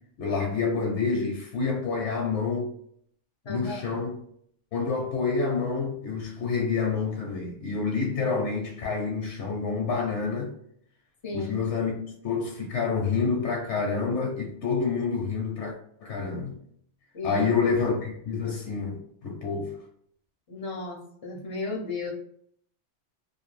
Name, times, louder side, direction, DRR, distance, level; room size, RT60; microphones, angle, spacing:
voice 1, 0.2-2.7 3.5-4.2 4.7-10.5 11.3-15.7 16.0-16.6 17.2-19.8, left 5 dB, 75° left, 0.9 m, -28 dB
voice 2, 3.4-4.0 11.2-11.6 17.1-17.5 20.5-22.1, left 3 dB, 45° left, 0.4 m, -34 dB
2.6 x 2.2 x 3.1 m
omnidirectional pair, 1.3 m